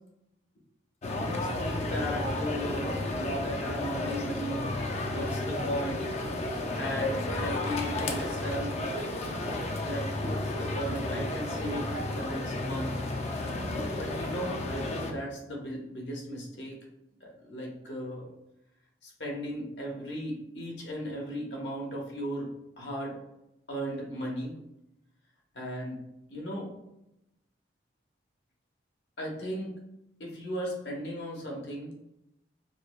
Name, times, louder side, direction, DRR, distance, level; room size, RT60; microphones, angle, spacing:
sound 1, 1.0-15.1, left 2 dB, 35° left, 0.3 m, -32 dB
voice 1, 1.1-4.6 5.1-6.1 6.8-8.8 9.8-12.9 13.9-16.8 17.2-18.3 19.0-22.5 22.8-23.2 23.7-24.5 25.5-26.0 26.3-26.7 29.2-29.7 30.2-31.9, equal, 75° left, -1 dB, 0.9 m, -36 dB
4.9 x 2.1 x 2.3 m, 0.87 s
head